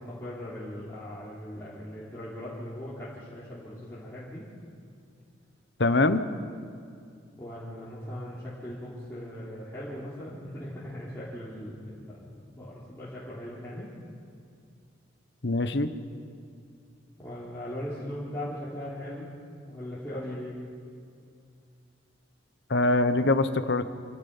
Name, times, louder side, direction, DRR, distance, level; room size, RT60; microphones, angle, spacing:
voice 1, 0.0-4.5 7.4-13.9 17.2-20.7, left 1 dB, 15° left, -10 dB, 3.5 m, -39 dB
voice 2, 5.8-6.2 15.4-15.9 22.7-23.8, left 2 dB, 60° left, 10 dB, 1.0 m, -23 dB
27.0 x 17.5 x 5.6 m, 2.4 s
head